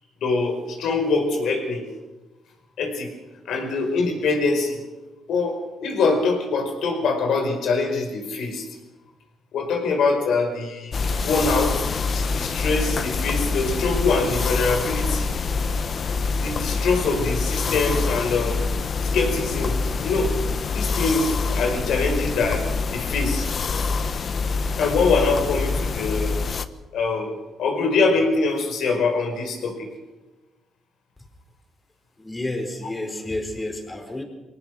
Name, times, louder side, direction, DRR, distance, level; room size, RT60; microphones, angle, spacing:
voice 1, 0.2-1.8 2.8-3.1 3.4-4.8 5.3-8.6 9.5-11.0 11.2-11.8 12.1-15.3 16.4-18.6 19.0-20.3 20.7-22.7 22.9-23.5 24.8-26.4 26.9-27.3 27.6-29.9, left 3 dB, 75° left, 4 dB, 5.1 m, -23 dB
sound 1, 10.9-26.7, left 4 dB, 45° left, 1.1 m, -25 dB
voice 2, 32.2-34.2, left 1 dB, 15° left, 5 dB, 4.5 m, -30 dB
23.5 x 18.0 x 6.5 m, 1.1 s
cardioid pair, 90°, 0 cm